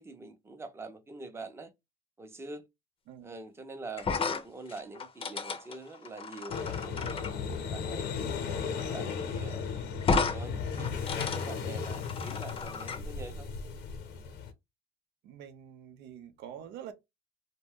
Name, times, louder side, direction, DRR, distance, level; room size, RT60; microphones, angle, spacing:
voice 1, 0.0-1.7 2.2-2.6 3.2-8.1 8.5-9.6 10.3-13.5, right 3 dB, 15° right, 0.6 m, -45 dB
sound 1, 4.0-7.3 8.8-8.9 9.2-9.3 10.0-10.4 10.7-13.0, left 4 dB, 35° left, 0.5 m, -33 dB
sound 2, 6.5-14.5, left 6 dB, 85° left, 0.8 m, -36 dB
voice 2, 15.2-16.9, right 9 dB, 85° right, 0.6 m, -46 dB
2.6 x 2.2 x 3.4 m
cardioid pair, 110°, 17 cm